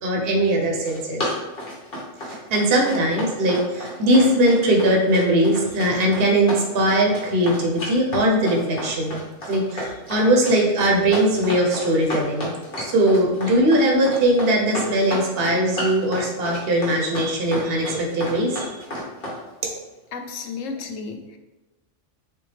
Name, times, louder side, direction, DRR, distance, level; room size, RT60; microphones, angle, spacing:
voice 1, 0.0-1.2 2.2-12.5 12.8-18.7, right 1 dB, 55° right, -1 dB, 1.0 m, -20 dB
Run, 0.6-19.4, left 1 dB, 50° left, 1.4 m, -31 dB
voice 2, 20.1-21.4, left 4 dB, 90° left, 5 dB, 1.0 m, -33 dB
6.7 x 2.3 x 3.3 m, 1.1 s
omnidirectional pair, 1.3 m